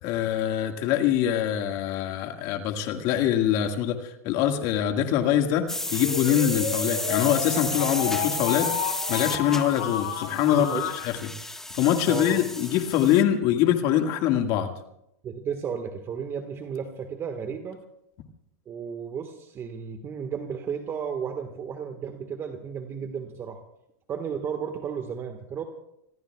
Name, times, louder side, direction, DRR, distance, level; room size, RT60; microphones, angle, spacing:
voice 1, 0.0-10.7 11.0-11.1 11.7-14.7, left 10 dB, 50° left, 5 dB, 1.9 m, -24 dB
sound 1, 5.7-13.2, left 1 dB, 5° left, 1.5 m, -33 dB
sound 2, 6.0-11.0, left 8 dB, 70° left, 4.4 m, -31 dB
voice 2, 10.5-10.9 12.1-12.4 15.2-17.8 18.7-23.6 24.1-25.6, right 7 dB, 30° right, 6 dB, 1.6 m, -33 dB
27.0 x 21.0 x 2.4 m, 0.78 s
hypercardioid pair, 110°, 8 cm